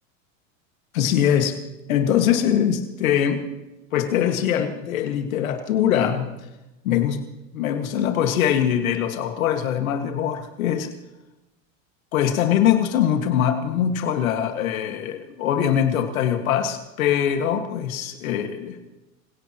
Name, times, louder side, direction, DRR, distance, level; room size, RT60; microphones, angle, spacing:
voice 1, 0.9-1.6 1.9-3.5 3.9-6.3 6.8-7.2 7.5-10.9 12.1-18.8, left 9 dB, 90° left, 5 dB, 1.9 m, -22 dB
26.5 x 17.0 x 3.0 m, 0.99 s
supercardioid pair, 105°, 40 cm